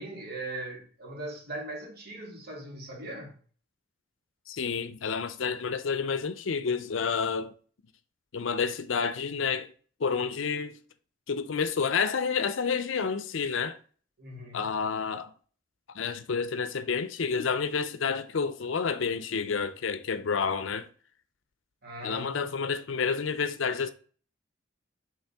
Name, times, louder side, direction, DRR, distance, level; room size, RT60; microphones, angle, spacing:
voice 1, 0.0-3.4 14.2-14.8 21.8-22.5, right 1 dB, 50° right, 1.9 m, -40 dB
voice 2, 4.5-7.5 8.3-9.7 10.0-10.8 11.3-13.8 14.5-15.3 16.0-20.9 22.0-23.9, left 5 dB, 75° left, 0.5 m, -29 dB
8.3 x 3.2 x 3.5 m
head